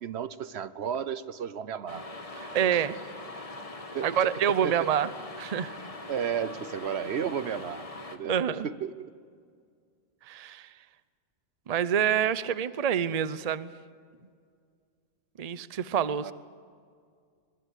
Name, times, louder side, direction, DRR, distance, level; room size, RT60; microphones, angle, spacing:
voice 1, 0.0-2.0 2.6-2.8 3.9-4.3 4.6-5.1 6.1-9.1 16.2-16.3, right 8 dB, 70° right, 15 dB, 1.0 m, -34 dB
sound 1, 1.9-8.2, left 2 dB, 30° left, 1.5 m, -42 dB
voice 2, 2.5-3.0 4.0-5.1 5.4-5.7 8.3-8.7 10.3-10.7 11.7-13.7 15.4-16.3, right 8 dB, 40° right, 15 dB, 0.7 m, -27 dB
23.5 x 21.5 x 8.2 m, 2.1 s
omnidirectional pair, 1.1 m